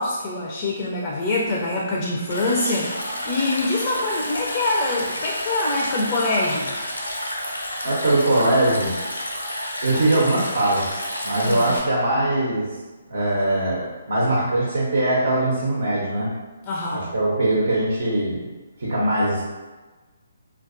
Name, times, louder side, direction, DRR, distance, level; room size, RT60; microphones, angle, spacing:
voice 1, 0.0-2.9 3.3-6.8 11.3-11.7 16.7-17.1, left 2 dB, 35° left, -3 dB, 0.3 m, -24 dB
Stream, 2.3-11.8, left 1 dB, 90° left, 0.5 m, -30 dB
voice 2, 7.8-8.9 9.8-12.7 13.1-16.3 16.9-18.5 18.8-19.4, right 1 dB, 70° right, -5 dB, 0.5 m, -21 dB
2.3 x 2.2 x 2.5 m, 1.2 s
figure-of-eight pair, 140°, 0 cm